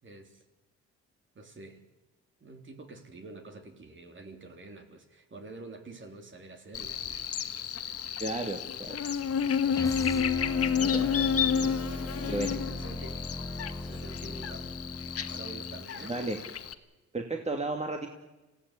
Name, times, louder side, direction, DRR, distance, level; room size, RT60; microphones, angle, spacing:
voice 1, 0.0-0.4 1.4-1.8 2.4-7.3 11.5-13.2 13.6-14.8 15.3-16.1, right 2 dB, 40° right, 5 dB, 3.8 m, -47 dB
Buzz, 6.7-16.7, left 7 dB, 50° left, 1.5 m, -31 dB
voice 2, 8.2-9.0 9.8-9.9 10.8-11.1 12.3-12.6 16.0-16.4 17.1-18.1, right 2 dB, 20° right, 3 dB, 2.7 m, -33 dB
sound 1, 9.7-15.9, left 2 dB, 10° left, 0.7 m, -38 dB
26.5 x 17.0 x 8.5 m, 1.1 s
cardioid pair, 90°, 30 cm